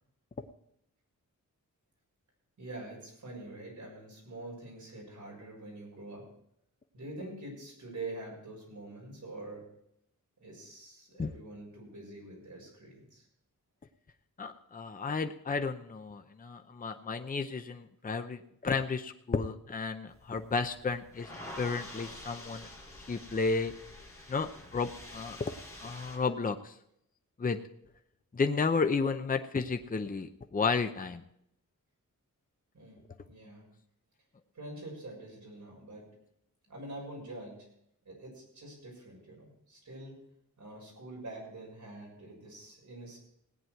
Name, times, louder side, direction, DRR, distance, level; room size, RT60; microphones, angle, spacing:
voice 1, 2.6-6.2 6.9-9.6 10.4-13.2 18.8-18.9 32.7-33.0 33.3-33.6 34.5-36.0 36.7-37.7 38.0-40.1 40.6-43.2, right 2 dB, 65° right, -1 dB, 6.6 m, -45 dB
voice 2, 14.4-21.3 21.6-22.7 23.1-23.7 24.3-25.5 25.8-26.7 27.4-27.6 28.3-31.2, left 4 dB, 25° left, 7 dB, 0.7 m, -32 dB
sound 1, 20.1-26.2, left 1 dB, 10° left, 5.7 m, -48 dB
17.5 x 9.6 x 4.5 m, 0.75 s
wide cardioid pair, 145°, 32 cm